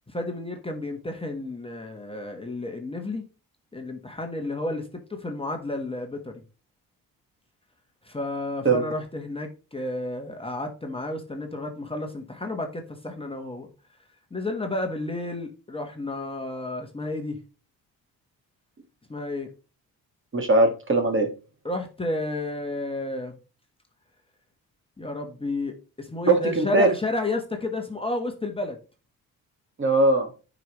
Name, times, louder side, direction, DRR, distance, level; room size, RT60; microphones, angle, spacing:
voice 1, 0.1-3.2 3.7-6.4 8.0-13.7 14.3-17.4 19.1-19.5 21.6-23.4 25.0-28.8, left 2 dB, 15° left, 4 dB, 1.2 m, -31 dB
voice 2, 20.3-21.3 26.3-26.9 29.8-30.3, right 2 dB, 30° right, 6 dB, 1.7 m, -20 dB
9.1 x 5.2 x 3.0 m, 0.33 s
cardioid pair, 95°, 37 cm